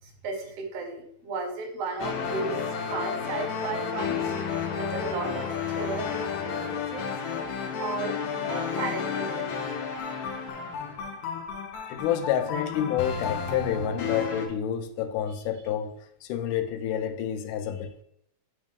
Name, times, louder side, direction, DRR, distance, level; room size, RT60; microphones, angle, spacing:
voice 1, 0.2-4.2 4.7-5.5 5.8-6.2 6.4-7.0 7.8-9.7, right 3 dB, 70° right, 4 dB, 1.5 m, -34 dB
sound 1, 2.0-14.5, left 6 dB, 70° left, 2.1 m, -32 dB
voice 2, 11.9-15.9 16.2-18.0, left 9 dB, 85° left, 8 dB, 2.1 m, -29 dB
8.8 x 3.2 x 3.5 m, 0.72 s
omnidirectional pair, 3.6 m